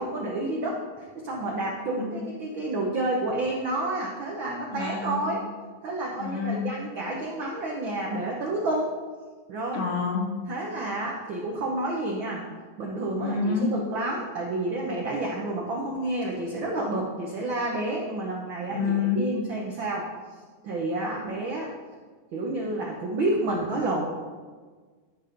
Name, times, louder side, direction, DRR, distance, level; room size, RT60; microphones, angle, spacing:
voice 1, 0.0-5.4 5.8-8.9 9.5-9.8 10.5-12.5 12.8-20.1 20.6-21.7 22.3-24.1, right 2 dB, 80° right, -1 dB, 1.0 m, -30 dB
voice 2, 4.7-5.3 6.2-6.7 9.7-10.3 13.2-13.7 18.0-18.1 18.7-19.2, left 5 dB, 65° left, 0 dB, 1.9 m, -28 dB
12.5 x 5.1 x 3.8 m, 1.5 s
omnidirectional pair, 3.5 m